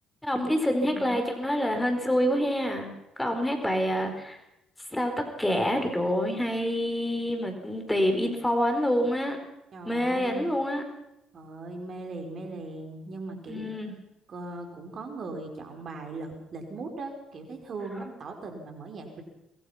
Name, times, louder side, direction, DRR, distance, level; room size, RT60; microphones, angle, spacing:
voice 1, 0.2-4.4 4.9-9.4 9.8-10.8 13.5-14.0, equal, 10° left, 6 dB, 4.5 m, -27 dB
voice 2, 0.8-1.2 9.7-10.5 11.3-13.6 14.3-19.2, right 3 dB, 50° right, 4 dB, 5.0 m, -39 dB
24.5 x 21.0 x 5.9 m, 0.86 s
hypercardioid pair, 50°, 0 cm